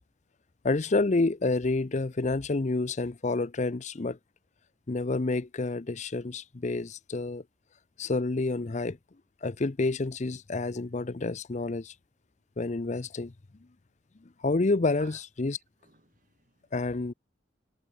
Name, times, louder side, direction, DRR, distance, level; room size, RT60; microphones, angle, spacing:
voice 1, 0.6-4.2 4.9-7.4 8.0-9.0 9.4-11.9 12.6-13.3 14.4-15.6 16.7-17.1, left 3 dB, 40° left, 0.6 m, -29 dB
voice 2, 15.0-16.9, right 4 dB, 45° right, 4.1 m, -56 dB
head